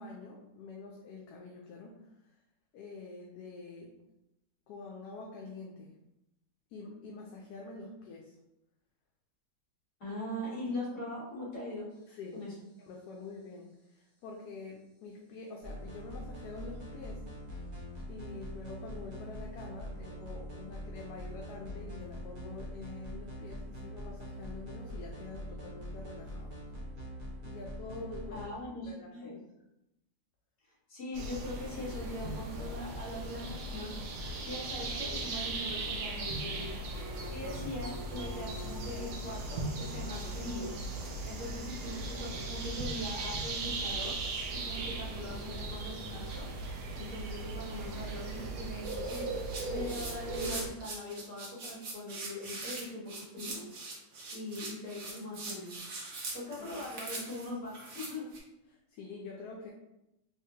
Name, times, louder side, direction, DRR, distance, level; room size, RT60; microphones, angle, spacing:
voice 1, 0.0-2.0 2.7-3.9 4.7-5.9 6.7-8.3 10.1-10.2 12.1-12.3 12.8-17.2 18.1-26.6 27.4-28.4 28.9-29.3 56.6-56.8 58.7-59.7, left 3 dB, 75° left, -1 dB, 1.1 m, -46 dB
voice 2, 10.0-11.9 12.3-12.5 28.3-29.4 30.9-33.9 34.4-36.7 37.3-40.7 41.2-44.1 44.7-46.5 47.0-49.3 49.7-53.6 54.3-55.7 56.3-58.3, left 1 dB, 60° left, -5 dB, 1.8 m, -41 dB
sound 1, 15.6-28.5, equal, 40° right, 0.9 m, -43 dB
sound 2, 31.1-50.7, right 2 dB, 80° right, 1.2 m, -38 dB
sound 3, 48.8-58.4, right 3 dB, 60° right, 1.2 m, -42 dB
3.5 x 3.0 x 2.8 m, 0.88 s
omnidirectional pair, 1.7 m